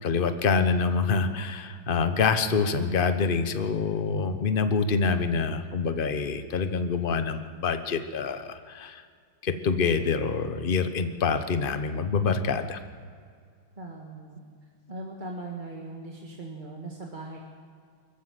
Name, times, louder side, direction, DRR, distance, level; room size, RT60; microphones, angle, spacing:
voice 1, 0.0-9.0 9.4-12.8, left 5 dB, 35° left, 9 dB, 0.9 m, -26 dB
voice 2, 13.8-14.4 14.9-17.4, right 2 dB, 25° right, -2 dB, 1.9 m, -39 dB
24.5 x 14.5 x 7.6 m, 2.1 s
omnidirectional pair, 2.2 m